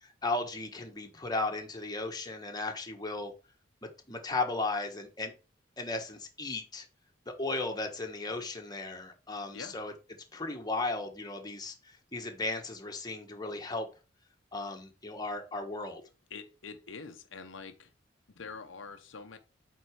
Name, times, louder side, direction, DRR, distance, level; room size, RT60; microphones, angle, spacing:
voice 1, 0.0-3.3 3.8-5.3 5.8-6.8 7.3-9.9 10.3-11.7 12.1-13.9 14.5-16.0, left 2 dB, 20° left, 1.3 m, -35 dB
voice 2, 16.3-17.9 18.4-19.4, left 5 dB, 70° left, 0.8 m, -45 dB
8.7 x 4.0 x 4.7 m
head